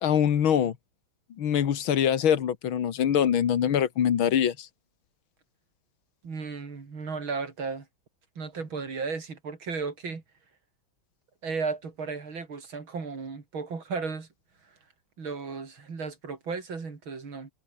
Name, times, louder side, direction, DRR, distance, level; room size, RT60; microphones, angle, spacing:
voice 1, 0.0-0.8 1.4-4.7, left 9 dB, 80° left, 2.3 m, -24 dB
voice 2, 6.2-7.9 8.4-10.2 11.4-14.3 15.2-17.5, right 4 dB, 80° right, 4.3 m, -34 dB
omnidirectional pair, 2.2 m